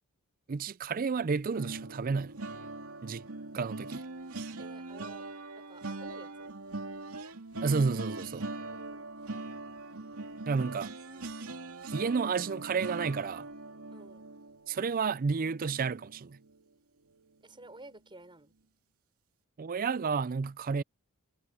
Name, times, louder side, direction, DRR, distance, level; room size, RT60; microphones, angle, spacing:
voice 1, 0.5-2.3 3.0-3.3 3.5-4.0 7.6-8.4 10.5-10.9 11.9-13.5 14.7-16.4 19.6-20.8, right 5 dB, 40° right, 0.4 m, -31 dB
sound 1, 1.5-16.7 17.1-17.3 17.6-17.8, right 2 dB, 75° right, 2.6 m, -42 dB
voice 2, 4.6-5.3 5.6-6.5 8.4-9.0 11.1-11.3 13.9-14.3 17.4-18.5, right 2 dB, 20° right, 6.0 m, -53 dB
head